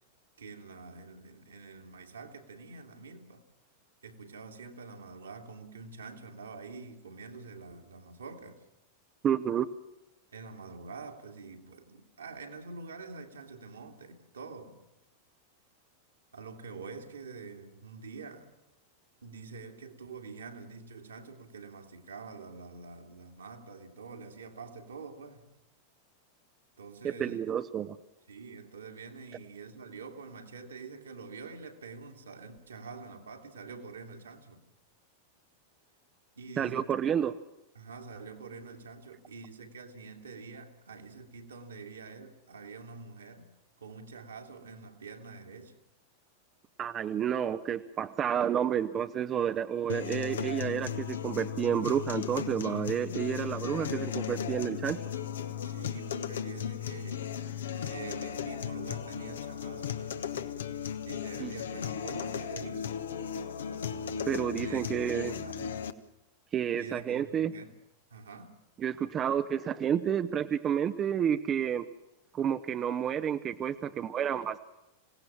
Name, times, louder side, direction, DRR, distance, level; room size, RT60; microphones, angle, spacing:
voice 1, 0.4-3.4 4.0-8.6 10.3-14.8 16.3-18.5 19.2-25.5 26.8-27.5 28.3-34.6 36.4-36.9 37.7-43.5 43.8-45.7 55.6-57.3 57.7-60.2 61.0-62.9 64.6-65.8 66.7-67.8 68.1-68.6, right 4 dB, 70° right, 2.6 m, -46 dB
voice 2, 9.2-9.7 27.0-28.0 36.6-37.4 46.8-55.0 61.4-61.5 64.3-65.4 66.5-67.5 68.8-71.9 72.3-74.6, right 9 dB, 25° right, 0.8 m, -30 dB
sound 1, 49.9-65.9, left 8 dB, 65° left, 1.2 m, -36 dB
26.5 x 17.5 x 7.4 m
figure-of-eight pair, 90°, 0 cm